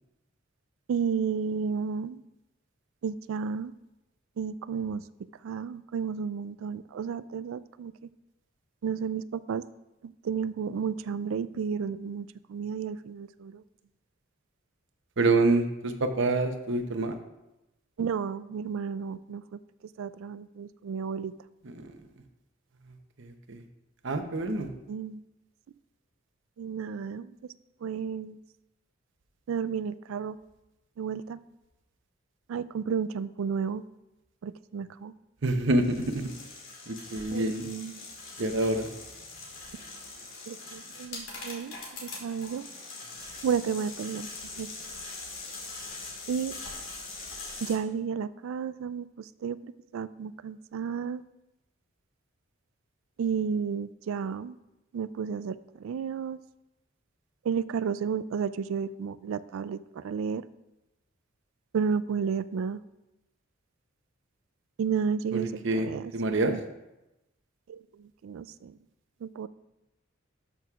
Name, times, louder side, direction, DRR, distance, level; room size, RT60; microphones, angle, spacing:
voice 1, 0.9-2.2 3.0-3.7 4.4-7.9 8.8-9.6 10.0-13.6 18.0-19.6 20.0-21.3 24.9-25.2 26.6-27.4 27.8-28.4 29.5-30.4 31.0-31.4 32.5-33.8 34.4-35.1 37.3-38.0 40.5-41.7 42.0-42.7 43.4-44.3 44.6-44.7 46.3-46.6 47.6-51.2 53.2-54.6 54.9-56.4 57.4-60.4 61.7-62.8 64.8-66.6 67.7-68.8 69.2-69.5, right 6 dB, 85° right, 16 dB, 0.3 m, -32 dB
voice 2, 15.2-17.1 21.8-21.9 23.2-23.6 24.0-24.7 35.4-36.3 36.9-37.6 38.4-38.9 65.3-65.8 66.1-66.5, right 2 dB, 65° right, 6 dB, 0.8 m, -27 dB
sound 1, 35.7-47.7, left 3 dB, 90° left, 2.4 m, -42 dB
12.5 x 6.1 x 2.4 m, 0.94 s
head